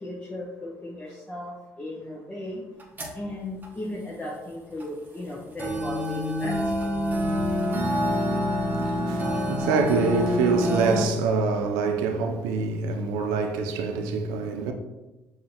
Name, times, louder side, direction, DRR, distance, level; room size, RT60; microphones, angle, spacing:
voice 1, 0.0-2.6 3.2-6.9, left 1 dB, 20° left, 0.8 m, -36 dB
sound 1, 2.8-3.2 3.6-3.7 4.8-4.9 5.6-11.1, equal, 30° right, 0.9 m, -26 dB
voice 2, 8.6-14.7, right 5 dB, 85° right, 0.4 m, -26 dB
5.4 x 2.7 x 2.8 m
supercardioid pair, 75°, 6 cm